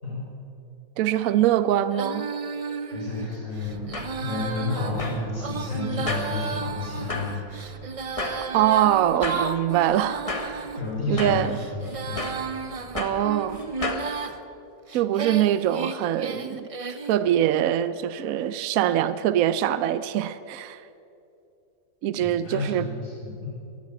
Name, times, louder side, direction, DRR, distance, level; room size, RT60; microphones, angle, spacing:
voice 1, 1.0-2.3 8.5-10.7 11.1-11.5 12.9-13.6 14.9-16.7 17.1-20.8 22.0-22.8, right 11 dB, 70° right, 14 dB, 1.0 m, -23 dB
Female singing, 1.9-10.8 11.4-14.4 14.9-17.2, right 5 dB, 55° right, 0.3 m, -33 dB
voice 2, 2.9-3.9 4.2-7.4 10.8-12.2 16.9-17.0 22.2-23.5, left 3 dB, 60° left, -6 dB, 5.8 m, -31 dB
sound 1, 3.6-14.1, left 2 dB, 25° left, 1.2 m, -36 dB
14.0 x 11.5 x 8.6 m, 2.7 s
omnidirectional pair, 1.6 m